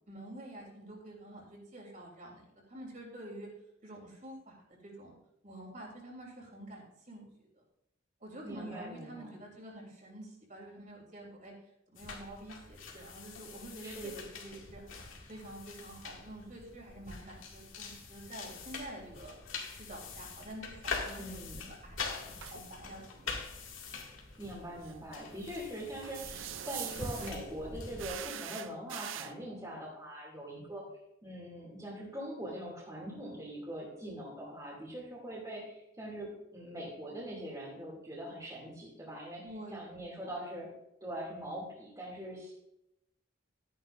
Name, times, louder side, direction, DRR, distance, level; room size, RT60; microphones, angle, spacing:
voice 1, 0.1-3.5 3.8-5.2 5.4-7.6 8.2-11.5 11.9-14.8 15.3-19.3 19.7-21.4 21.8-23.4 39.4-40.0, right 1 dB, 40° right, -1 dB, 3.3 m, -48 dB
voice 2, 8.4-9.4 13.8-14.1 21.2-21.7 24.4-30.8 31.2-39.4 39.7-40.7 41.0-42.5, equal, 15° right, -5 dB, 2.6 m, -42 dB
sound 1, 12.0-28.1, left 4 dB, 80° left, 2.3 m, -44 dB
sound 2, 22.3-22.6 24.8-24.9 26.0-27.4 28.0-29.3, right 11 dB, 75° right, 0.5 m, -42 dB
13.0 x 10.0 x 2.6 m, 0.81 s
head